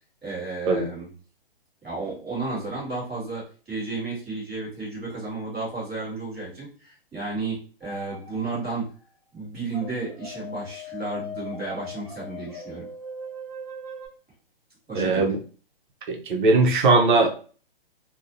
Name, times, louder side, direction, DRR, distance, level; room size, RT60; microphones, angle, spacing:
voice 1, 0.2-1.1 1.8-8.9 9.3-12.9 14.9-15.4, right 3 dB, ahead, -23 dB, 0.3 m, -33 dB
sound 1, 7.8-8.8 9.7-14.1, left 2 dB, 20° right, 1.1 m, -39 dB
voice 2, 14.9-15.4 16.1-17.3, right 3 dB, 55° right, 4 dB, 0.6 m, -19 dB
2.5 x 2.0 x 2.7 m, 0.39 s
hypercardioid pair, 155°, 30 cm